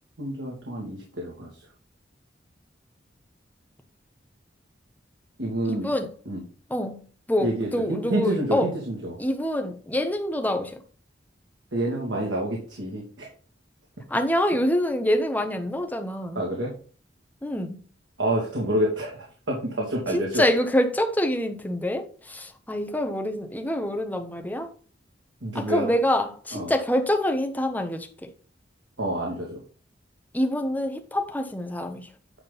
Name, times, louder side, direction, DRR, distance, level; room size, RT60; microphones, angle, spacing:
voice 1, 0.2-1.5 5.4-5.9 6.3-6.4 7.4-9.2 11.7-13.3 16.4-16.7 18.2-19.2 19.5-20.4 25.4-25.9 26.5-26.7 29.0-29.6, right 1 dB, 85° right, 2.0 m, -28 dB
voice 2, 5.7-6.1 6.7-7.0 7.3-8.7 9.2-10.8 14.1-16.4 17.4-17.8 20.1-24.7 25.5-28.3 30.3-32.1, left 1 dB, 10° left, 1.0 m, -26 dB
9.3 x 3.8 x 5.4 m
head